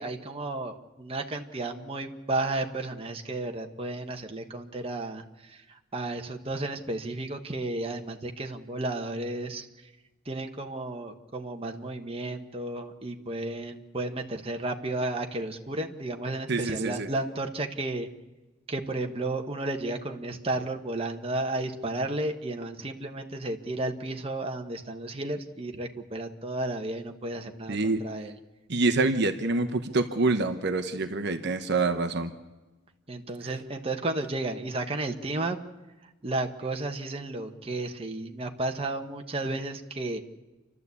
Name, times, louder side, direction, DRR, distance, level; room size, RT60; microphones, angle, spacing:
voice 1, 0.0-9.7 10.2-18.1 18.7-28.4 33.1-35.6 36.2-40.2, right 2 dB, 30° right, 4 dB, 1.3 m, -33 dB
voice 2, 16.5-17.1 27.7-28.0 28.7-32.3, right 3 dB, 60° right, 8 dB, 1.0 m, -26 dB
28.0 x 12.5 x 8.4 m, 1.2 s
head